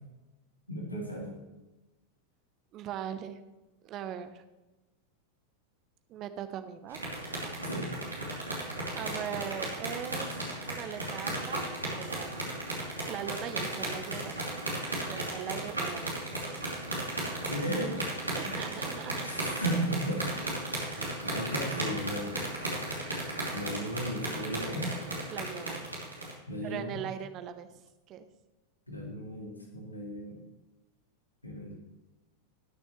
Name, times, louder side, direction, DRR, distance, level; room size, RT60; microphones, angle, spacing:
voice 1, 0.7-1.4 7.6-7.9 17.5-18.1 18.4-18.6 19.2-20.8 21.2-22.3 23.5-25.0 26.5-27.1 28.9-30.4 31.4-31.7, right 1 dB, 85° left, 0 dB, 2.3 m, -35 dB
voice 2, 2.7-3.4 3.8-4.4 6.1-7.0 8.6-12.5 13.1-14.4 15.1-16.2 16.4-16.7 18.3-19.6 20.9-21.3 25.3-25.9 26.6-27.8 28.1-28.3, right 9 dB, 35° right, 10 dB, 0.9 m, -40 dB
sound 1, 6.9-26.3, right 1 dB, 80° right, 3.1 m, -35 dB
19.5 x 6.6 x 3.2 m, 1.1 s
figure-of-eight pair, 90°, 0 cm